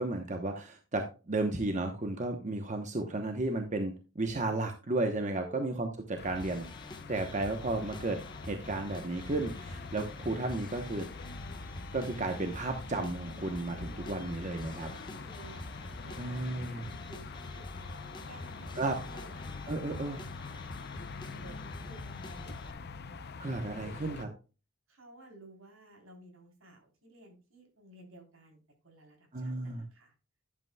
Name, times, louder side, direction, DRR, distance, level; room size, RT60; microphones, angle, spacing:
voice 1, 0.0-6.7 7.1-11.1 11.9-14.9 16.2-16.9 18.8-19.0 19.7-20.2 23.4-24.3 29.3-29.9, right 2 dB, 35° right, 5 dB, 1.0 m, -33 dB
sound 1, 6.1-24.2, left 4 dB, 50° left, 0.6 m, -45 dB
sound 2, 6.3-22.7, left 1 dB, 20° left, 1.1 m, -46 dB
voice 2, 14.9-18.7 19.0-19.5 19.8-21.5 21.9-23.3 23.6-24.3 24.9-30.1, right 2 dB, 75° right, 2 dB, 3.6 m, -55 dB
11.0 x 8.2 x 2.3 m, 0.31 s
head